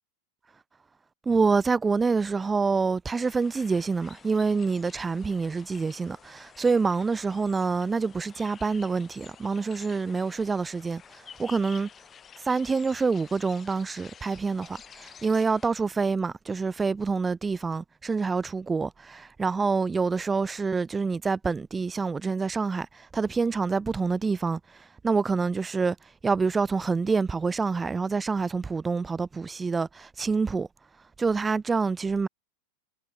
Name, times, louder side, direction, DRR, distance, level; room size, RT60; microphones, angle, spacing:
voice 1, 1.3-11.0 11.4-11.9 12.4-24.6 25.0-26.0 26.2-30.7 31.2-32.3, right 4 dB, 15° right, 0.5 m, -26 dB
sound 1, 3.1-15.7, left 7 dB, 20° left, 5.1 m, -50 dB
figure-of-eight pair, 90°, 0 cm